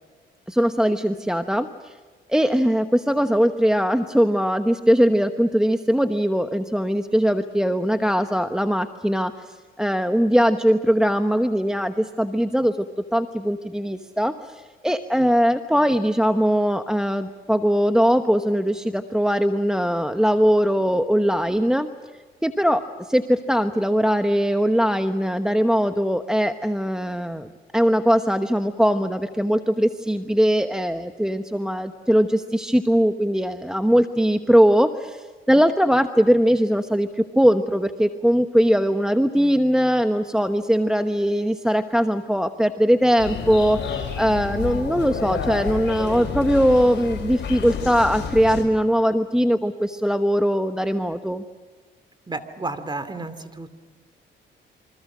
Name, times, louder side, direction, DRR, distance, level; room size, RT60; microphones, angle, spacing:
voice 1, 0.5-1.9 2.3-21.9 22.4-51.4, equal, 5° right, 8 dB, 1.1 m, -21 dB
sound 1, 43.2-48.6, left 6 dB, 65° left, 7.2 m, -30 dB
voice 2, 52.3-53.7, right 2 dB, 20° right, 11 dB, 2.6 m, -32 dB
28.0 x 25.0 x 6.2 m, 1.4 s
cardioid pair, 90°, 20 cm